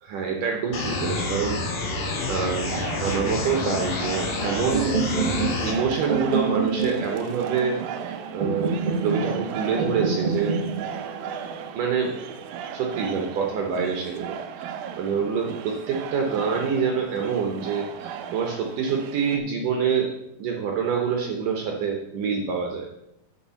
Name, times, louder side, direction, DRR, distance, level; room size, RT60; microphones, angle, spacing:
voice 1, 0.0-7.8 8.0-8.7 9.0-10.6 11.7-12.2 12.7-20.1 20.4-22.9, right 6 dB, 70° right, 1 dB, 2.1 m, -26 dB
sound 1, 0.7-5.7, left 3 dB, 65° left, 1.5 m, -28 dB
sound 2, 2.7-19.4, right 8 dB, 90° right, 2.0 m, -37 dB
sound 3, 4.7-12.6, right 5 dB, 50° right, 1.9 m, -28 dB
7.0 x 6.3 x 6.9 m, 0.82 s
omnidirectional pair, 4.9 m